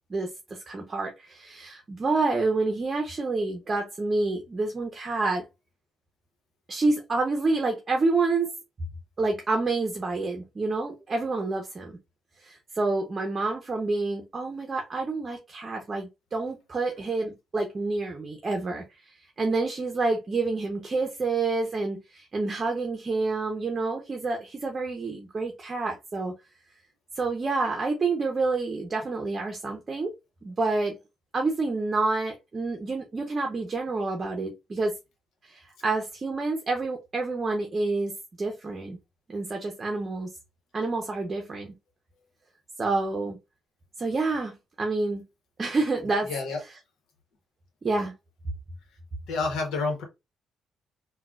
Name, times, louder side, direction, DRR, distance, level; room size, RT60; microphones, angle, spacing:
voice 1, 0.1-5.5 6.7-8.6 9.2-12.0 12.4-26.3 27.2-30.1 30.4-31.0 31.3-34.9 35.4-39.0 39.3-40.3 40.7-41.7 42.8-43.4 44.0-45.2 45.6-46.3 47.8-48.1, right 3 dB, 35° right, 0.7 m, -28 dB
voice 2, 46.3-46.6 49.3-50.0, left 3 dB, 80° left, 1.0 m, -28 dB
3.8 x 2.3 x 2.3 m
cardioid pair, 90°, 0 cm